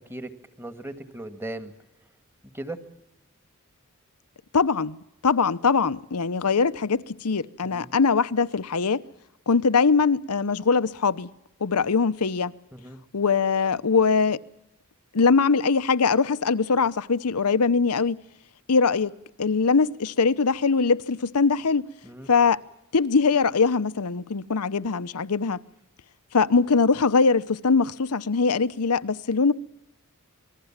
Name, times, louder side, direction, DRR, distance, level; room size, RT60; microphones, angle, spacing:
voice 1, 0.6-1.7 2.5-2.8 7.6-7.9 12.7-13.0 22.0-22.3, right 1 dB, 10° right, 1.7 m, -37 dB
voice 2, 4.5-9.0 9.5-11.3 11.6-12.5 13.1-14.4 15.1-18.2 18.7-19.1 19.4-21.9 22.3-22.6 22.9-25.6 26.3-29.5, left 5 dB, 90° left, 0.8 m, -22 dB
26.5 x 20.0 x 7.3 m
head